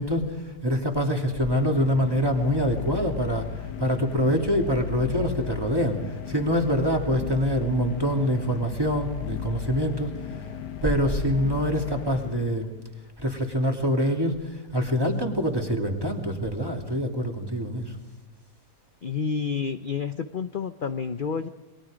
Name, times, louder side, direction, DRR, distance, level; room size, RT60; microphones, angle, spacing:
voice 1, 0.0-10.1 10.8-12.7 13.2-17.9, equal, 15° right, 2 dB, 2.8 m, -25 dB
sound 1, 1.1-12.9, left 11 dB, 80° left, 1.8 m, -36 dB
voice 2, 19.0-21.5, left 6 dB, 45° left, 9 dB, 0.7 m, -29 dB
28.5 x 23.0 x 5.1 m, 1.2 s
omnidirectional pair, 1.8 m